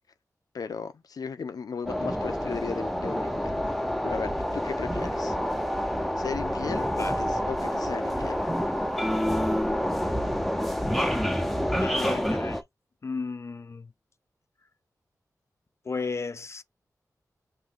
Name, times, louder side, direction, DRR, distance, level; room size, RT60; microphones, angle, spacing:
voice 1, 0.5-3.5 4.0-5.4 6.2-8.4, left 5 dB, 80° left, 0.7 m, -36 dB
sound 1, 1.9-12.6, equal, ahead, 0.7 m, -28 dB
voice 2, 11.8-12.6 13.0-13.9 15.8-16.6, left 4 dB, 45° left, 0.4 m, -34 dB
3.8 x 2.8 x 3.7 m
wide cardioid pair, 80°, 6 cm